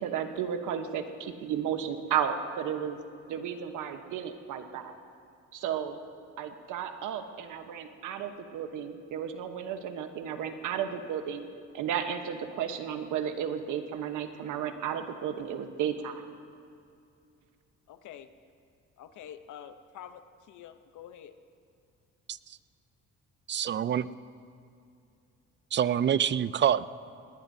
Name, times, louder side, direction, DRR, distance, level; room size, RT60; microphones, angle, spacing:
voice 1, 0.0-3.0 3.3-5.0 5.5-6.0 6.4-11.4 11.7-16.2, right 8 dB, 90° right, 7 dB, 1.1 m, -33 dB
voice 2, 17.9-18.3 19.0-21.3, left 9 dB, 80° left, 10 dB, 0.8 m, -47 dB
voice 3, 23.5-24.0 25.7-26.8, right 9 dB, 40° right, 17 dB, 0.4 m, -26 dB
19.5 x 19.0 x 2.7 m, 2.5 s
cardioid pair, 90°, 30 cm